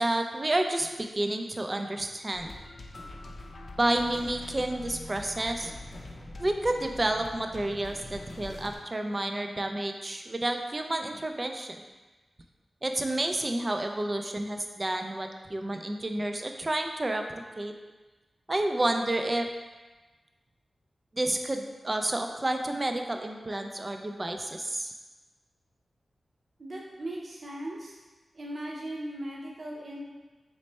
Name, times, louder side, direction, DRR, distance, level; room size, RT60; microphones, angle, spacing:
voice 1, 0.0-2.5 3.8-5.7 6.4-11.8 12.8-17.7 18.5-19.5 21.1-24.9, right 1 dB, 30° right, 5 dB, 0.4 m, -30 dB
sound 1, 2.3-8.8, left 2 dB, 60° left, 0.5 m, -44 dB
voice 2, 26.6-28.0 28.3-30.1, right 1 dB, 55° right, -3 dB, 0.9 m, -38 dB
3.2 x 3.2 x 4.1 m, 1.2 s
wide cardioid pair, 70°, 0 cm